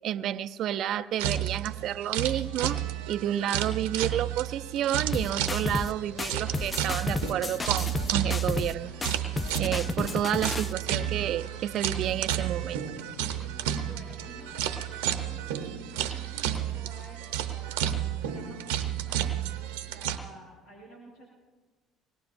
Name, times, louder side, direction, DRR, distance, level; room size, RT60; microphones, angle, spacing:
voice 1, 0.0-2.8 3.1-8.9 9.6-12.8, right 11 dB, 60° right, 12 dB, 0.5 m, -30 dB
sound 1, 1.2-20.2, right 11 dB, 85° right, 0.8 m, -32 dB
sound 2, 5.1-5.9 6.2-8.7 9.0-10.7, left 3 dB, 25° left, 0.4 m, -32 dB
Drum kit / Snare drum, 6.0-15.0, left 3 dB, 60° left, 2.8 m, -51 dB
voice 2, 13.7-21.3, equal, 80° left, -6 dB, 5.0 m, -51 dB
24.5 x 20.0 x 2.6 m, 1.3 s
hypercardioid pair, 65°, 0 cm